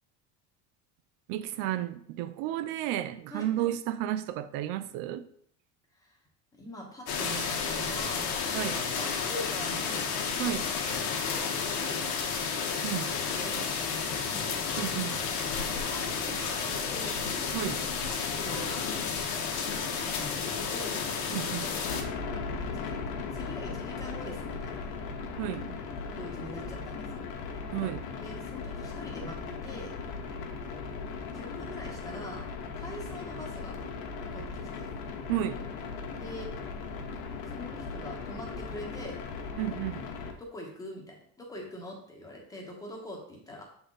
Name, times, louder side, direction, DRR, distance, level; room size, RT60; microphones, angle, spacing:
voice 1, 1.3-5.3 8.5-8.8 10.4-10.7 12.8-13.1 14.8-15.2 17.5-17.8 21.3-21.7 25.4-25.7 27.7-28.0 35.3-35.6 39.6-40.1, right 12 dB, 70° right, 0.5 m, -32 dB
voice 2, 6.5-8.3 9.0-10.1 11.3-12.1 13.2-14.6 15.6-17.2 18.0-18.8 19.9-21.0 21.6-21.8 22.6-23.0 23.3-24.9 26.1-27.3 28.2-29.9 31.3-32.5 32.8-33.8 34.3-34.9 36.2-36.5 37.5-39.1 40.4-43.6, equal, 10° left, 1.0 m, -43 dB
sound 1, 7.1-22.0, left 5 dB, 90° left, 1.2 m, -31 dB
sound 2, 21.8-40.3, left 4 dB, 70° left, 1.1 m, -38 dB
6.9 x 4.0 x 3.8 m
cardioid pair, 180°, 34 cm